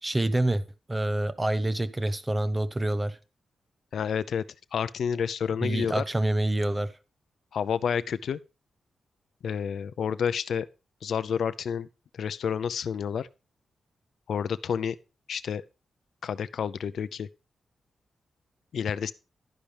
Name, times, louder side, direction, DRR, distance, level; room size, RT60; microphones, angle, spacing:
voice 1, 0.0-0.6 0.9-3.2 5.6-6.9, right 1 dB, 15° right, 0.9 m, -27 dB
voice 2, 3.9-4.4 4.7-6.0 7.5-8.4 9.4-10.7 11.0-11.9 12.2-13.3 14.3-15.0 15.3-15.6 16.2-17.3 18.7-19.1, left 7 dB, 65° left, 0.5 m, -29 dB
12.0 x 10.0 x 3.4 m
wide cardioid pair, 170°, 0 cm